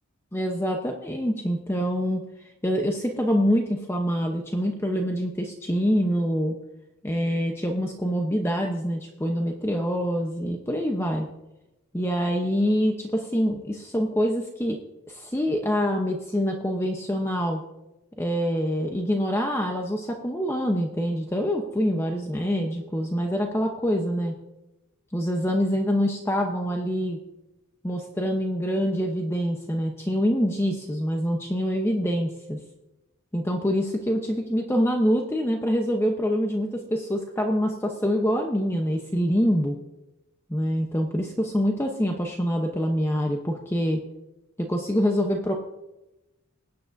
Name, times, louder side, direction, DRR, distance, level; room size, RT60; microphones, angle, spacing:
voice 1, 0.3-2.2 2.6-6.5 7.0-11.3 11.9-14.8 15.1-17.6 18.2-24.3 25.1-27.2 27.8-32.6 33.3-39.8 40.5-44.0 44.6-45.5, equal, 10° left, 2 dB, 0.8 m, -25 dB
20.5 x 9.6 x 2.6 m, 0.96 s
head